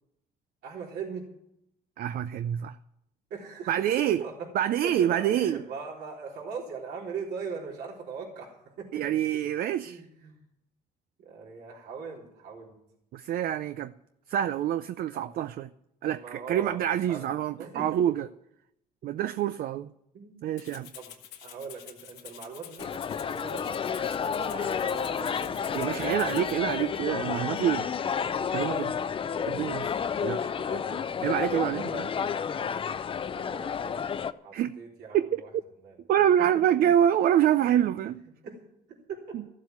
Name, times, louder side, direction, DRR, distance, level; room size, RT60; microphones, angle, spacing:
voice 1, 0.6-1.3 3.3-4.5 4.8-9.0 9.8-10.4 11.2-12.8 15.1-15.3 16.2-17.2 17.6-18.0 20.1-20.4 20.9-21.1 21.4-26.5 30.5-31.1 33.3-34.1 34.4-35.5 35.8-36.0 36.5-36.6 38.4-38.6 38.9-39.4, right 5 dB, 75° right, 3.7 m, -40 dB
voice 2, 2.0-2.8 3.7-4.2 4.5-5.6 8.9-10.0 13.1-13.9 14.3-15.7 16.0-18.3 19.0-19.9 20.4-20.9 25.7-27.9 28.5-29.0 29.5-30.5 31.2-32.1 34.5-34.7 35.1-35.4 36.1-38.2 39.3-39.4, right 10 dB, 60° right, 0.5 m, -26 dB
Rattle (instrument), 20.6-26.6, left 10 dB, 85° left, 2.0 m, -48 dB
sound 1, 22.8-34.3, left 7 dB, 30° left, 0.6 m, -31 dB
14.5 x 7.5 x 9.3 m
cardioid pair, 110°, 17 cm